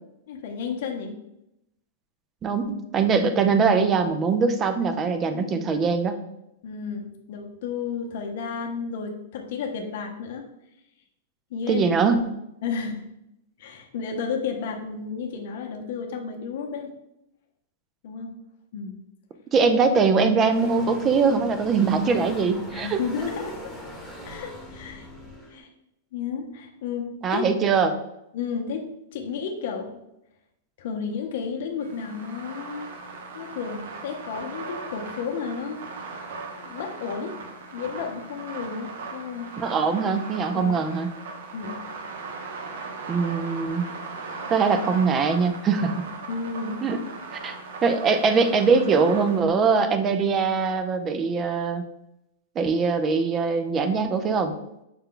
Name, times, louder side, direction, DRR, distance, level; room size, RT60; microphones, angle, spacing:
voice 1, 0.3-1.2 5.3-5.8 6.6-10.4 11.5-12.1 12.6-13.1 13.6-16.9 18.0-18.3 18.7-18.9 22.7-23.7 24.2-25.1 25.5-25.7 26.1-27.5 28.3-29.9 30.8-32.9 33.3-35.8 36.6-37.4 37.7-39.5 40.5-40.8 41.5-41.8 46.3-46.8, left 6 dB, 60° left, 3 dB, 0.6 m, -32 dB
voice 2, 2.4-6.2 11.7-12.3 19.5-23.0 27.2-27.9 39.6-41.1 43.1-43.9 44.5-45.9 46.8-47.0 47.4-47.6 47.8-51.8 52.6-54.5, right 5 dB, 20° right, 8 dB, 0.4 m, -22 dB
sound 1, 20.5-25.6, equal, 5° right, 1.1 m, -40 dB
sound 2, 31.8-49.4, right 4 dB, 70° right, 0.8 m, -38 dB
5.8 x 2.2 x 3.7 m, 0.85 s
supercardioid pair, 150°, 0 cm